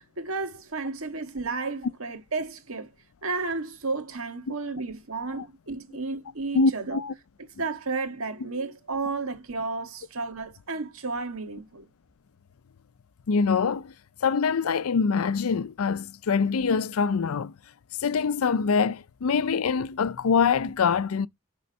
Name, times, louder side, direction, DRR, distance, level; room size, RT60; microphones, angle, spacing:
voice 1, 0.0-2.9 3.2-7.0 7.6-11.9, right 3 dB, 85° right, 1.7 m, -32 dB
voice 2, 6.5-7.1 13.3-13.9 14.2-17.5 18.0-21.3, left 5 dB, 90° left, 0.5 m, -24 dB
11.0 x 3.8 x 5.4 m
head